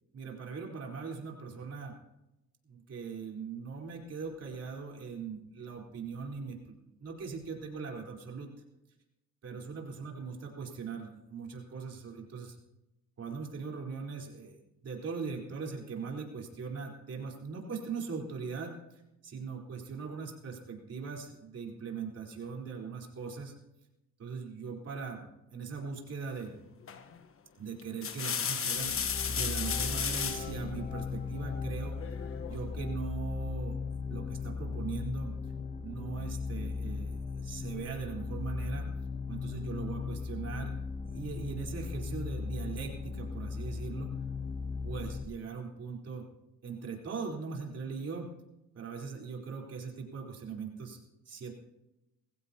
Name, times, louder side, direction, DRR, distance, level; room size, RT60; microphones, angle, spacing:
voice 1, 0.1-1.9 2.6-6.6 6.8-8.5 9.4-12.6 13.2-14.6 14.8-23.5 24.2-26.6 27.6-29.0 29.3-32.0 32.5-33.8 34.1-35.3 35.8-38.9 39.3-40.7 41.1-44.2 44.8-46.3 46.6-48.3 48.7-51.0 51.3-51.5, right 5 dB, 55° right, 0 dB, 4.2 m, -40 dB
sound 1, 26.9-27.2 27.8-30.5 32.0-32.6, left 7 dB, 45° left, 1.2 m, -34 dB
sound 2, 28.8-45.2, left 4 dB, 25° left, 1.2 m, -37 dB
22.0 x 15.5 x 2.9 m, 0.93 s
cardioid pair, 90°, 30 cm